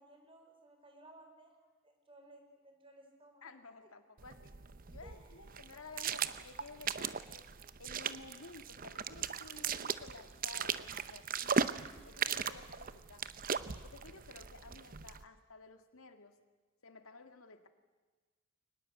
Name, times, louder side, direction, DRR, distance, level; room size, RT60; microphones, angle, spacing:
voice 1, 0.0-1.6 1.8-3.4 3.8-3.9 5.0-5.4, right 1 dB, 25° right, 3 dB, 4.4 m, -59 dB
voice 2, 3.4-4.6 4.9-7.5 7.8-11.7 12.1-13.3 13.8-16.4 16.8-17.7, left 3 dB, 80° left, 8 dB, 1.9 m, -54 dB
sound 1, 4.2-15.2, right 6 dB, 40° right, 0.7 m, -38 dB
23.0 x 19.5 x 8.2 m, 1.3 s
head